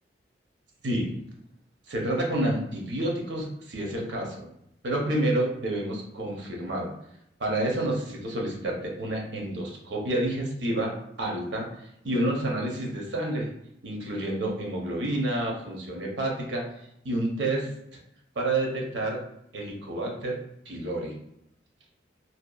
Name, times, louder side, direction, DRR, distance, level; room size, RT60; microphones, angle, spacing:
voice 1, 0.8-1.2 1.9-4.5 4.8-6.9 7.4-11.7 12.0-13.5 13.8-16.6 17.0-17.7 18.4-19.2 19.5-20.4 20.7-21.2, right 1 dB, 80° right, -1 dB, 0.7 m, -29 dB
2.7 x 2.2 x 2.3 m, 0.78 s
head